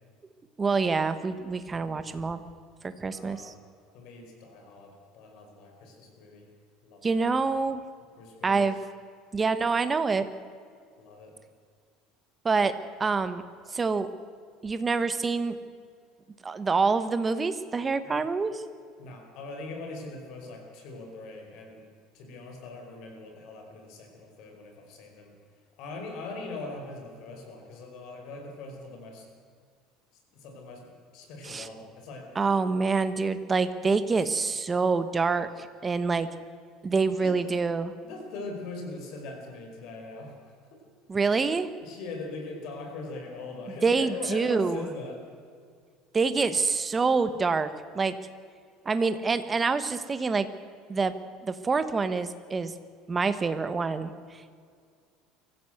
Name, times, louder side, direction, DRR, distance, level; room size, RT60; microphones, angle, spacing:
voice 1, 0.6-2.4 2.8-3.5 7.0-7.8 8.4-8.8 9.3-10.2 12.4-12.7 13.0-13.4 13.7-14.1 14.6-15.6 16.4-18.6 31.4-31.7 32.3-36.3 36.8-37.9 41.1-41.7 43.8-44.9 46.1-47.7 47.9-48.2 48.8-50.5 50.9-51.1 51.4-52.7 53.1-54.6, right 4 dB, 15° right, 11 dB, 1.1 m, -26 dB
voice 2, 1.7-2.4 3.0-3.5 3.9-6.5 6.8-7.2 8.2-8.7 11.0-11.4 18.0-18.3 19.0-21.8 22.1-25.3 25.8-29.3 30.3-32.3 34.2-34.3 37.2-37.4 38.0-40.8 41.8-45.3, left 3 dB, 55° left, 3 dB, 4.8 m, -41 dB
23.0 x 15.5 x 7.9 m, 2.1 s
cardioid pair, 160°, 0 cm